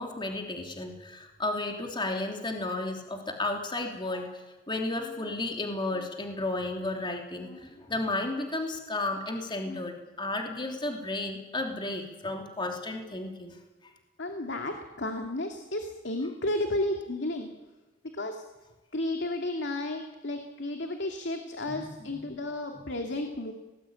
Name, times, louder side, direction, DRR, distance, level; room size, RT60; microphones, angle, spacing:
voice 1, 0.0-13.6 21.7-21.9 22.7-22.8, left 2 dB, 25° left, 2 dB, 3.2 m, -33 dB
voice 2, 14.2-17.5 18.1-18.4 18.9-23.5, left 1 dB, 65° left, 4 dB, 2.5 m, -32 dB
25.5 x 19.0 x 9.0 m, 1.2 s
head